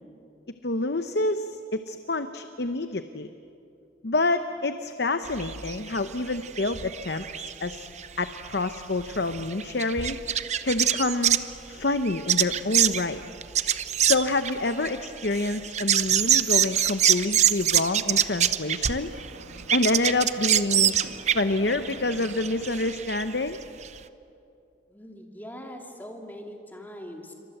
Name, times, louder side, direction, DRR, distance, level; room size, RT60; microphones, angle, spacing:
voice 1, 0.6-3.3 4.0-7.9 8.2-10.2 10.6-11.4 11.7-13.2 14.0-19.1 19.7-21.0 21.3-23.6, left 2 dB, 60° left, 9 dB, 0.8 m, -27 dB
sound 1, 5.3-11.5 12.0-19.3 19.6-23.2 23.5-23.6 23.8-23.9, right 10 dB, 35° right, 0.7 m, -25 dB
Ocean, 18.8-23.7, right 2 dB, 70° right, 1.9 m, -46 dB
voice 2, 24.9-27.3, equal, 10° left, 2 dB, 2.6 m, -41 dB
27.5 x 25.0 x 7.9 m, 2.6 s
head